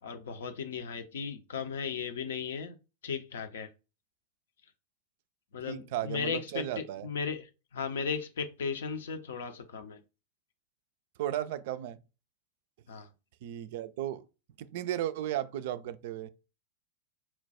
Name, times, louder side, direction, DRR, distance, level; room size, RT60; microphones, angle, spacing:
voice 1, 0.0-2.8 3.0-3.7 5.5-10.0 12.9-13.1, left 6 dB, 60° left, 0.6 m, -36 dB
voice 2, 5.7-7.1 11.2-12.0 13.4-14.3 14.6-16.3, right 12 dB, 50° right, 0.3 m, -35 dB
4.3 x 2.2 x 4.1 m
figure-of-eight pair, 90°, 0 cm